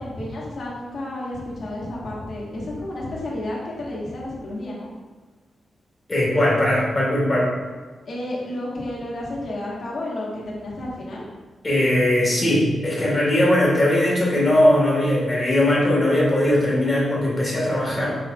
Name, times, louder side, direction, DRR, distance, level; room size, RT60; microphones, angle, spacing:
voice 1, 0.0-4.9 8.0-11.2, left 1 dB, 55° left, -5 dB, 1.1 m, -31 dB
voice 2, 6.1-7.5 11.6-18.2, left 1 dB, 20° left, -5 dB, 1.3 m, -19 dB
4.6 x 4.2 x 2.3 m, 1.4 s
wide cardioid pair, 150°, 0 cm